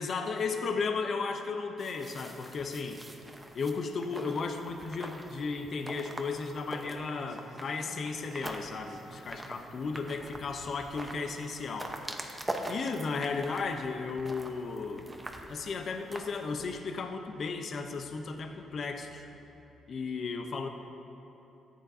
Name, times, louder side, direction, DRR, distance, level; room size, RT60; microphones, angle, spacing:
voice 1, 0.0-3.0 3.5-11.9 12.7-15.1 15.5-19.3 19.9-20.7, left 4 dB, 55° left, 6 dB, 0.6 m, -34 dB
sound 1, 1.8-16.8, right 1 dB, 15° right, 0.8 m, -44 dB
sound 2, 6.4-19.5, right 1 dB, 60° right, 1.2 m, -59 dB
14.0 x 9.2 x 2.7 m, 3.0 s
cardioid pair, 90°, 0 cm